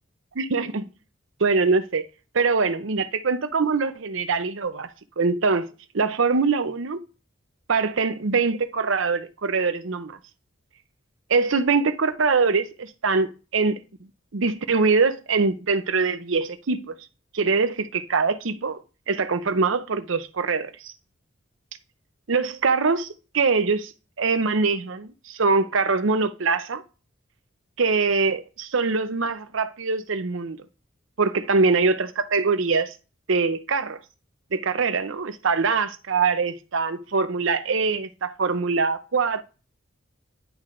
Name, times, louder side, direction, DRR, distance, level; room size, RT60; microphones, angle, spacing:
voice 1, 0.4-0.8 1.4-2.1 2.3-4.9 5.2-5.6 5.9-7.0 7.7-10.2 11.3-13.8 14.3-16.9 17.3-20.9 22.3-23.1 23.3-23.9 24.2-26.8 27.8-30.6 31.2-32.9 33.3-34.0 34.5-39.4, right 4 dB, 70° right, 0.7 m, -23 dB
10.5 x 3.8 x 3.2 m
head